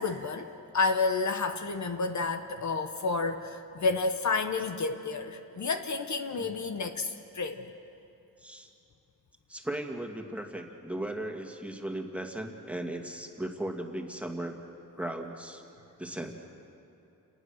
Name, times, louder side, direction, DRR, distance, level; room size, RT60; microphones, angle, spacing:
voice 1, 0.0-7.7, left 4 dB, 55° left, 7 dB, 1.1 m, -30 dB
voice 2, 9.5-14.6 15.0-15.6 16.0-16.3, right 1 dB, 5° right, 2 dB, 2.2 m, -37 dB
28.5 x 19.0 x 6.5 m, 2.7 s
wide cardioid pair, 90°, 34 cm